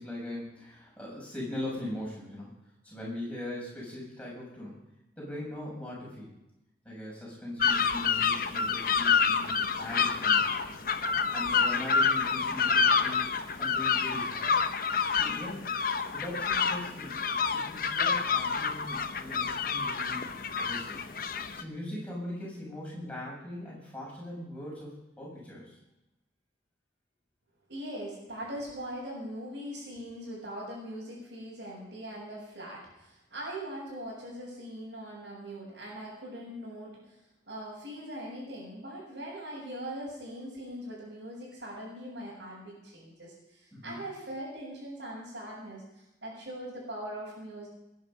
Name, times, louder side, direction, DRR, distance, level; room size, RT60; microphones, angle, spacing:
voice 1, 0.0-2.6 2.8-4.9 5.2-6.4 6.8-10.8 11.1-13.3 13.6-14.6 15.1-15.7 16.1-17.2 17.5-20.3 20.6-21.0 21.5-25.8 43.7-44.0, left 1 dB, 5° left, -5 dB, 7.2 m, -40 dB
sound 1, 7.6-21.6, left 6 dB, 50° left, 0.9 m, -28 dB
voice 2, 27.7-37.2 37.5-47.7, right 1 dB, 70° right, -8 dB, 6.8 m, -41 dB
21.5 x 10.5 x 5.5 m, 0.92 s
head